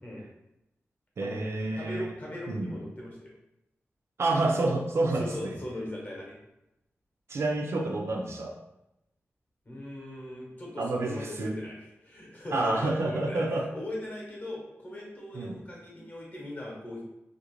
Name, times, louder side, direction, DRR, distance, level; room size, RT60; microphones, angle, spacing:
voice 1, 1.2-2.1 2.5-2.7 4.2-5.5 7.3-8.6 10.8-11.6 12.5-13.7 15.3-15.6, right 2 dB, 65° right, 1 dB, 0.4 m, -29 dB
voice 2, 1.7-3.3 5.1-6.4 9.6-17.0, left 1 dB, 35° left, -3 dB, 0.8 m, -39 dB
2.4 x 2.0 x 2.9 m, 0.88 s
wide cardioid pair, 100°, 5 cm